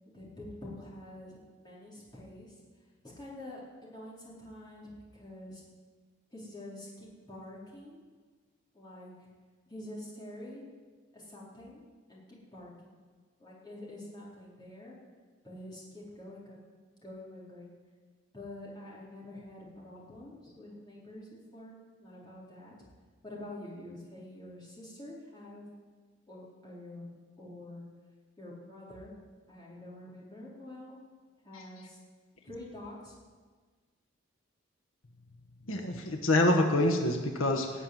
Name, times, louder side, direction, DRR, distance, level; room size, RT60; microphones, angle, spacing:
voice 1, 0.1-2.5 3.0-5.6 6.3-8.0 8.7-9.1 9.7-10.6 11.1-11.8 12.1-13.0 13.4-14.9 15.4-16.6 17.0-17.7 18.3-22.7 23.2-25.7 26.3-27.1 27.4-27.8 28.4-29.1 29.5-31.0 31.4-32.0 32.4-33.1, left 1 dB, 20° left, -6 dB, 4.2 m, -47 dB
voice 2, 35.7-37.8, left 1 dB, 85° left, 3 dB, 1.4 m, -26 dB
19.0 x 6.7 x 9.4 m, 1.5 s
head